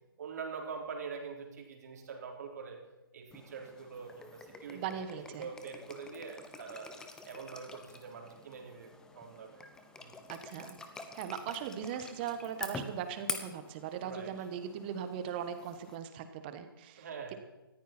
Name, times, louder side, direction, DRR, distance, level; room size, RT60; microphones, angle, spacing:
voice 1, 0.2-2.8 3.1-7.0 7.2-9.7 10.0-10.1 14.0-14.5 17.0-17.4, right 5 dB, 45° right, 1 dB, 3.8 m, -44 dB
sound 1, 3.3-16.0, left 3 dB, 5° left, 0.9 m, -46 dB
voice 2, 4.7-5.5 10.3-10.8 11.1-17.3, right 8 dB, 25° right, 9 dB, 1.5 m, -39 dB
19.0 x 14.5 x 4.5 m, 1.1 s
figure-of-eight pair, 145°, 12 cm